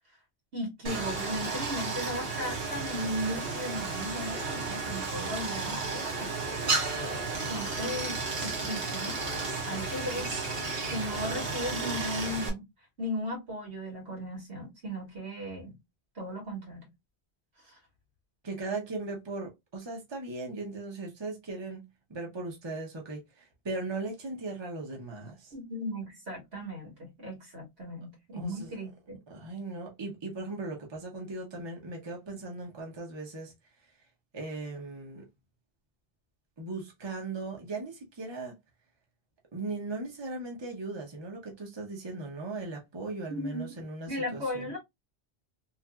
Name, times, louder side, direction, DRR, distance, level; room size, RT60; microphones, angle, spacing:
voice 1, 0.5-6.3 7.5-9.2 9.7-10.3 10.9-12.6 13.0-15.7 16.2-16.9 17.7-17.8 25.5-29.2 43.3-43.7 44.1-44.8, equal, 80° right, 1.8 m, -36 dB
Stream, 0.8-12.5, right 3 dB, 65° right, 1.1 m, -33 dB
voice 2, 18.4-25.5 28.4-28.9 29.3-33.5 34.3-35.2 36.6-38.5 39.5-44.7, right 3 dB, 25° right, 0.8 m, -38 dB
3.0 x 2.5 x 2.3 m
omnidirectional pair, 1.1 m